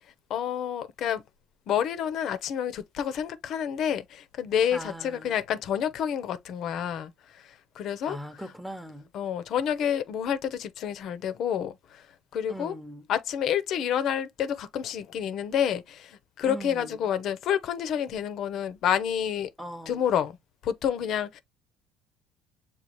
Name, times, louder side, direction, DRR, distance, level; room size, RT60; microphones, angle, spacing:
voice 1, 0.3-1.2 1.7-8.2 9.1-12.1 12.3-12.7 13.1-19.5 19.9-20.4 20.6-21.4, left 9 dB, 60° left, 0.6 m, -29 dB
voice 2, 4.7-5.4 8.1-9.1 12.5-13.1 16.4-17.0 19.6-20.0, equal, ahead, 0.8 m, -40 dB
6.9 x 2.4 x 2.9 m
supercardioid pair, 75°, 0 cm